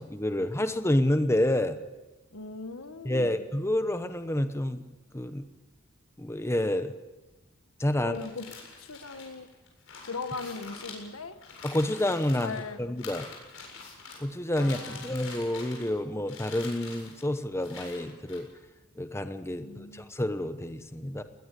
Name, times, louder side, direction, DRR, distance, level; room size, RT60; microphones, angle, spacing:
voice 1, 0.0-1.8 3.0-4.8 5.1-5.5 6.2-6.9 7.8-8.2 11.6-13.3 14.2-18.5 19.0-21.2, left 1 dB, 15° left, 9 dB, 1.0 m, -29 dB
voice 2, 2.3-3.4 8.0-8.5 8.8-9.5 10.0-11.4 12.4-12.8 14.6-15.2 19.6-20.1, left 4 dB, 85° left, 9 dB, 1.5 m, -39 dB
sound 1, 8.1-12.6 13.0-14.2 14.5-16.0 16.3-17.2 17.6-18.4, left 4 dB, 70° left, 7.6 m, -45 dB
21.0 x 19.0 x 8.4 m, 1.1 s
head